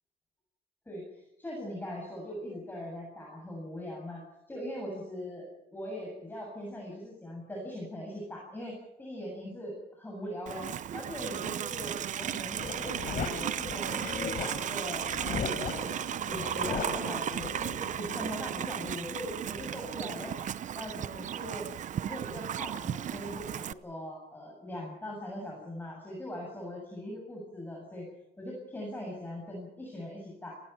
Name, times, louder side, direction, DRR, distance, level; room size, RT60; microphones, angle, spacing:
voice 1, 0.9-15.5 16.3-20.4 20.7-21.7 22.0-28.1 28.4-30.6, left 1 dB, 10° left, -1 dB, 7.7 m, -41 dB
Livestock farm animals working animals, 10.5-23.7, right 10 dB, 50° right, 0.8 m, -35 dB
sound 1, 12.6-17.8, left 6 dB, 55° left, 4.1 m, -37 dB
29.5 x 19.5 x 5.9 m, 0.88 s
cardioid pair, 110°, 17 cm